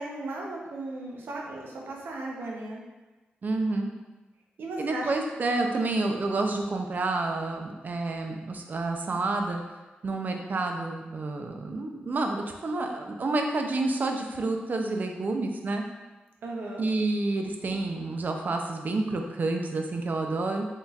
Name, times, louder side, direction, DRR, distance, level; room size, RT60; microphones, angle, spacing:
voice 1, 0.0-2.8 4.6-5.1 16.4-16.9, right 2 dB, 85° right, -2 dB, 0.7 m, -36 dB
voice 2, 3.4-3.9 4.8-9.6 10.0-15.8 16.8-20.7, right 2 dB, 50° right, 3 dB, 0.5 m, -29 dB
4.0 x 3.6 x 2.4 m, 1.2 s
cardioid pair, 75°, 4 cm